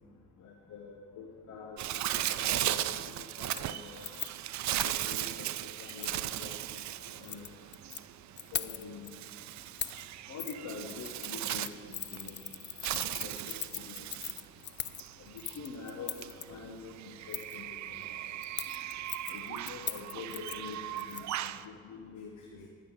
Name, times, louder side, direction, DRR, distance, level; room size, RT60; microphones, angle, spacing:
voice 1, 0.4-2.0 2.4-4.0 4.7-5.5 5.8-7.5 8.5-9.1 10.3-12.4 12.9-14.0 15.2-18.0 19.3-22.7, left 5 dB, 70° left, 1 dB, 1.2 m, -46 dB
Bird, 1.8-21.6, right 13 dB, 65° right, 0.5 m, -37 dB
Keys jangling, 2.2-2.6 2.9-3.2 3.5-5.0 5.9-6.2 7.1-8.0 8.4-9.1 9.8-10.0 10.4-10.6 10.9-16.4 17.3-17.6 18.4-21.5 21.8-21.9, left 9 dB, 40° left, 0.4 m, -41 dB
11.5 x 5.8 x 9.0 m, 2.3 s
cardioid pair, 90°, 30 cm